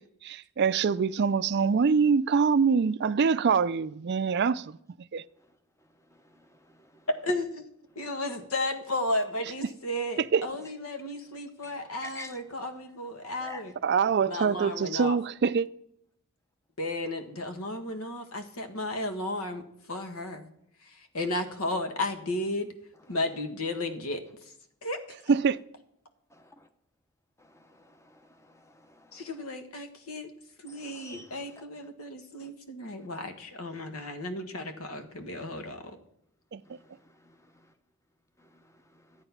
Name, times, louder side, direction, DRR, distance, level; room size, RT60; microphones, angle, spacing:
voice 1, 0.2-4.8 5.1-5.2 10.2-10.5 13.8-15.7 25.3-25.6 36.5-36.6, right 5 dB, 50° right, 0.4 m, -24 dB
voice 2, 6.4-7.0 11.6-12.4 13.4-14.1 23.0-23.4 26.3-26.7 27.4-29.5 30.7-31.6 32.4-32.5 36.7-36.8 37.2-37.3, left 2 dB, 15° left, 0.9 m, -49 dB
voice 3, 7.2-7.6 7.9-13.7 14.3-15.2 16.8-19.6 19.9-20.5 20.9-22.7 23.1-24.2 24.8-25.0 29.1-30.3 30.6-36.0, left 1 dB, 75° left, 1.6 m, -34 dB
13.0 x 8.8 x 5.9 m
head